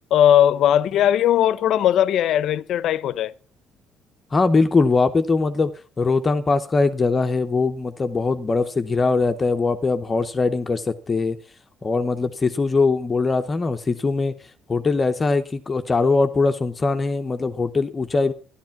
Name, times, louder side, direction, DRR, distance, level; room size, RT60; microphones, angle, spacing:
voice 1, 0.1-3.3, left 10 dB, 55° left, 0.7 m, -18 dB
voice 2, 4.3-5.7 6.0-11.4 11.8-14.3 14.7-18.3, left 3 dB, 20° left, 0.8 m, -21 dB
13.0 x 11.5 x 5.8 m
cardioid pair, 175°, 0 cm